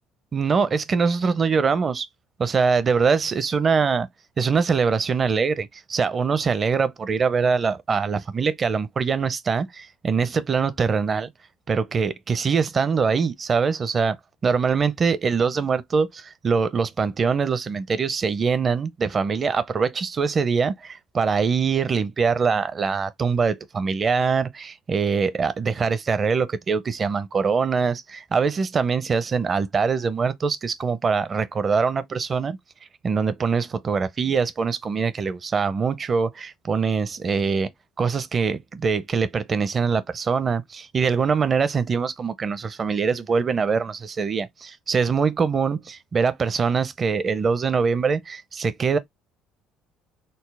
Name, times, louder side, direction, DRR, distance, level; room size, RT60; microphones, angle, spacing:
voice 1, 0.3-2.1 2.4-4.1 4.4-11.3 11.7-14.2 14.4-32.6 33.0-37.7 38.0-49.0, right 5 dB, 35° right, 0.6 m, -23 dB
4.1 x 2.0 x 3.4 m
hypercardioid pair, 60°, 0 cm